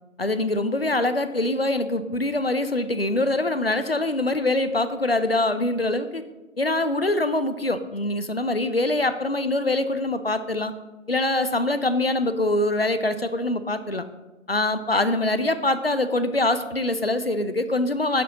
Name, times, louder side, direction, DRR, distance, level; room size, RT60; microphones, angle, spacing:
voice 1, 0.2-6.2 6.6-10.7 11.1-14.0 14.5-18.2, left 2 dB, 50° left, 11 dB, 0.4 m, -24 dB
6.6 x 6.3 x 3.9 m, 1.1 s
figure-of-eight pair, 180°, 40 cm